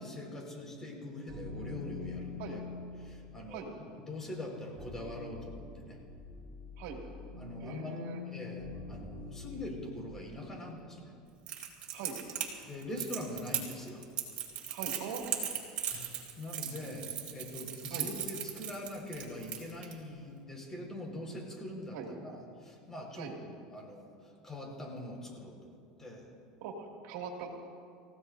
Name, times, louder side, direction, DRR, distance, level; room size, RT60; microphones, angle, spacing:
voice 1, 0.0-2.6 3.0-3.7 4.0-6.0 7.3-8.0 8.3-11.1 12.6-14.1 15.9-26.3, left 1 dB, 15° left, -1 dB, 5.1 m, -43 dB
sound 1, 1.3-10.5, left 4 dB, 10° right, 3.5 m, -45 dB
voice 2, 7.6-8.2 9.5-9.6 11.9-12.2 14.7-15.3 16.8-17.1 17.9-18.1 21.9-22.1 23.2-23.4 26.6-27.5, right 6 dB, 70° right, 1 dB, 2.5 m, -42 dB
Crackle, 11.5-19.9, right 10 dB, 45° right, 3.3 m, -37 dB
29.5 x 16.0 x 2.7 m, 2.3 s
supercardioid pair, 110°, 3 cm